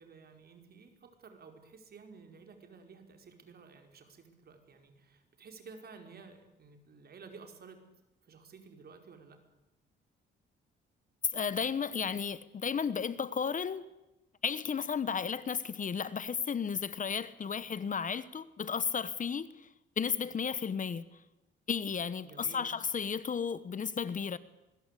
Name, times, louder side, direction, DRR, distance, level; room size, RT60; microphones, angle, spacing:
voice 1, 0.0-7.8 8.2-9.4 22.2-22.6, right 5 dB, 50° right, 5.0 m, -53 dB
voice 2, 11.3-13.9 14.4-19.7 20.0-21.0 21.7-24.4, left 6 dB, 40° left, 1.2 m, -33 dB
24.5 x 21.5 x 8.4 m
cardioid pair, 90°, 20 cm